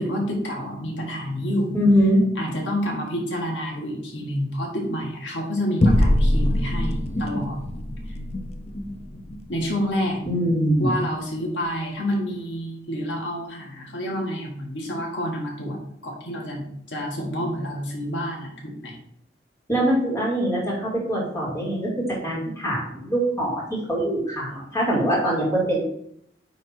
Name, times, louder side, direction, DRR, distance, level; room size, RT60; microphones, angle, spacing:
voice 1, 0.0-1.7 2.4-7.6 8.1-8.2 9.5-10.2 10.8-15.8 16.0-19.0, equal, 85° left, 0 dB, 1.7 m, -28 dB
voice 2, 1.7-2.2 10.3-11.0 19.7-21.9 22.2-23.6 23.9-25.9, equal, 15° left, -4 dB, 2.4 m, -22 dB
sound 1, 5.8-10.6, left 1 dB, 35° left, 0.6 m, -24 dB
9.1 x 3.5 x 4.5 m, 0.70 s
head